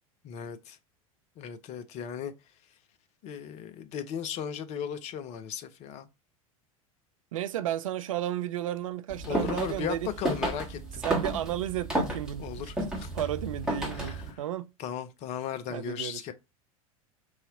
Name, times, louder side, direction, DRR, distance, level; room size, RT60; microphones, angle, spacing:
voice 1, 0.2-0.8 1.4-2.3 3.2-6.1 9.2-11.0 12.4-13.1 13.9-14.4 14.8-16.3, left 8 dB, 40° left, 0.6 m, -36 dB
voice 2, 7.3-10.1 11.0-12.6 13.1-14.7 15.7-16.3, right 12 dB, 65° right, 0.4 m, -33 dB
sound 1, 9.1-14.3, right 1 dB, 5° right, 1.5 m, -33 dB
3.2 x 2.8 x 3.8 m
figure-of-eight pair, 80°, 18 cm